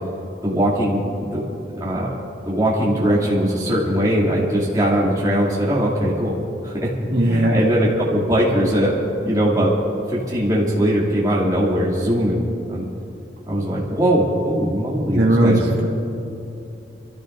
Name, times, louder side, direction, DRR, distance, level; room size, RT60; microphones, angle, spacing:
voice 1, 0.4-1.4 1.8-6.3 6.6-6.9 7.2-9.0 9.2-9.7 10.1-12.9 13.5-15.6, equal, 20° right, -6 dB, 2.6 m, -20 dB
voice 2, 7.1-7.6 15.1-15.8, right 1 dB, 65° right, -4 dB, 1.9 m, -17 dB
27.5 x 14.0 x 2.6 m, 2.8 s
head